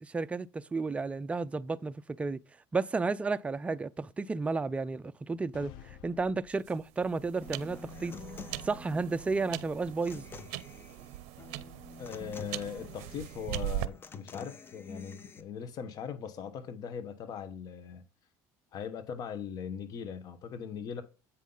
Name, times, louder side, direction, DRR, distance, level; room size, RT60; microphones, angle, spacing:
voice 1, 0.0-2.4 2.7-8.2 8.6-10.2, right 4 dB, 15° right, 0.4 m, -32 dB
sound 1, 5.5-7.2, left 11 dB, 75° left, 0.6 m, -52 dB
sound 2, 6.5-13.9, right 14 dB, 85° right, 0.5 m, -41 dB
Human voice / Acoustic guitar, 7.4-15.4, left 5 dB, 30° left, 0.9 m, -48 dB
voice 2, 12.0-18.0 18.7-21.0, left 7 dB, 55° left, 1.0 m, -40 dB
8.2 x 5.6 x 3.8 m
supercardioid pair, 110°, 8 cm